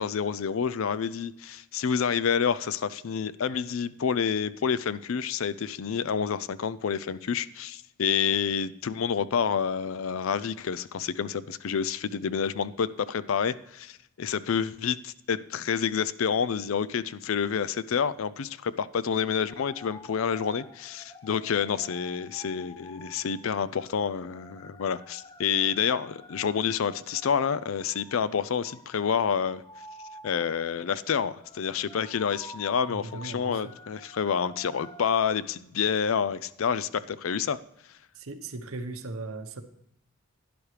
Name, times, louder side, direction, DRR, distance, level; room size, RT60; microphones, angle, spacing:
voice 1, 0.0-29.6 30.2-37.6, left 7 dB, 75° left, 17 dB, 0.4 m, -28 dB
sound 1, 19.5-35.2, left 1 dB, 15° left, 0.5 m, -49 dB
voice 2, 32.9-33.7 38.1-39.6, right 2 dB, 80° right, 8 dB, 1.0 m, -38 dB
12.0 x 10.0 x 3.3 m, 0.80 s
head